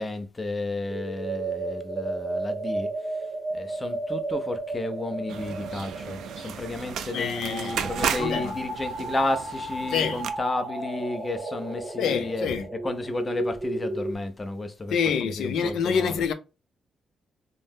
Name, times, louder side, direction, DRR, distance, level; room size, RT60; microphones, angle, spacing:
voice 1, 0.0-12.5 12.8-14.9 15.2-16.1, left 2 dB, 20° left, 0.4 m, -32 dB
sound 1, 0.9-14.1, right 2 dB, 35° right, 0.6 m, -33 dB
sound 2, 5.3-10.3, right 7 dB, 80° right, 0.3 m, -34 dB
voice 2, 7.1-8.6 9.9-10.2 12.0-12.7 14.9-16.3, left 7 dB, 90° left, 0.4 m, -27 dB
2.7 x 2.0 x 3.4 m
wide cardioid pair, 165°, 0 cm